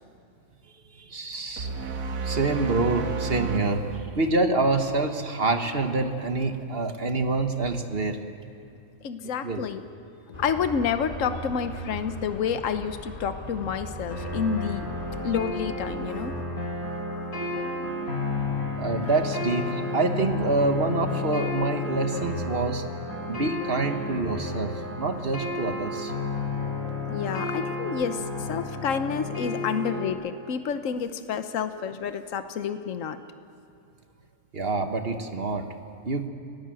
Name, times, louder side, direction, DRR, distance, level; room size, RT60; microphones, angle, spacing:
voice 1, 0.9-1.7 2.2-8.2 9.4-9.7 18.8-22.8 23.3-26.1 34.5-35.7 36.0-36.3, right 3 dB, 45° right, 6 dB, 1.5 m, -26 dB
sound 1, 1.6-4.9, right 5 dB, 80° right, 1.6 m, -32 dB
voice 2, 9.0-9.8 10.4-14.9 15.2-16.4 23.2-23.3 27.1-33.2, left 7 dB, 65° left, 9 dB, 1.3 m, -29 dB
sound 2, 10.3-16.1, equal, 30° left, 3.2 m, -39 dB
sound 3, 14.1-30.1, left 2 dB, 85° left, 4.9 m, -31 dB
30.0 x 17.5 x 7.8 m, 2.6 s
omnidirectional pair, 1.4 m